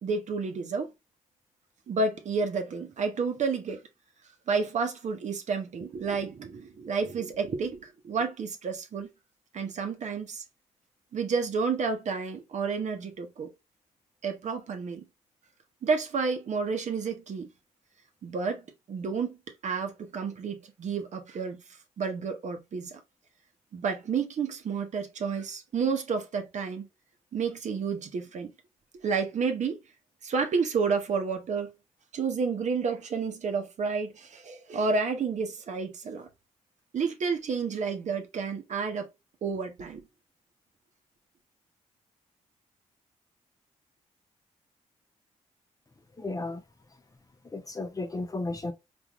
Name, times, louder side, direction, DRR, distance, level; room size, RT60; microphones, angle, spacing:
voice 1, 0.0-0.9 1.9-3.8 4.5-9.1 9.5-10.4 11.1-13.5 14.2-15.0 15.8-17.5 18.2-19.4 19.6-21.6 22.0-23.0 23.7-26.9 27.3-28.5 29.0-29.8 30.2-31.7 32.1-36.3 36.9-39.1 39.4-40.0, right 5 dB, 60° right, 0.9 m, -30 dB
voice 2, 46.2-46.6 47.5-48.7, left 2 dB, 25° left, 0.7 m, -33 dB
3.6 x 2.5 x 2.9 m
cardioid pair, 65°, 13 cm